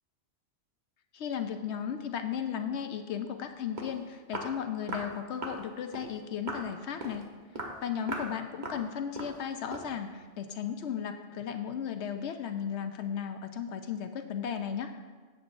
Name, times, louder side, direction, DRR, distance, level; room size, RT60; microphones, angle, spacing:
voice 1, 1.1-7.3 7.8-14.9, left 8 dB, 75° left, 7 dB, 0.9 m, -35 dB
Walk footsteps, 3.4-3.5 3.8-4.0 4.3-4.5 4.9-5.1 5.4-5.6 5.9-6.1 6.5-6.7 7.0-7.2 7.6-7.8 8.1-8.3 8.6-8.8 9.2-9.4 9.7-9.9, right 2 dB, 40° right, 1.2 m, -38 dB
16.5 x 7.9 x 2.5 m, 1.4 s
omnidirectional pair, 1.2 m